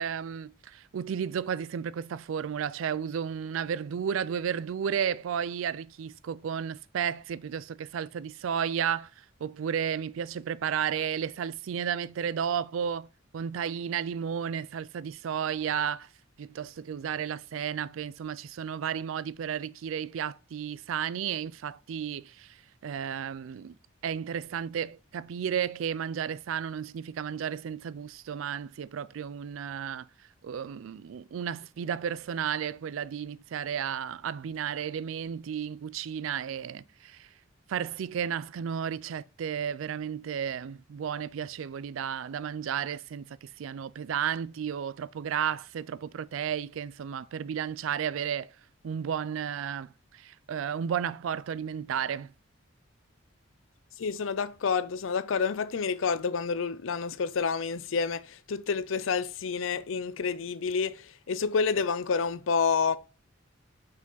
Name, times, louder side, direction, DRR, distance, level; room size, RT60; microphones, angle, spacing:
voice 1, 0.0-13.1 13.3-16.1 16.4-23.8 24.0-30.1 30.4-37.3 37.7-48.6 48.8-52.3, right 8 dB, 80° right, 0.3 m, -33 dB
voice 2, 54.0-63.0, left 5 dB, 75° left, 0.5 m, -29 dB
5.8 x 4.9 x 3.9 m
head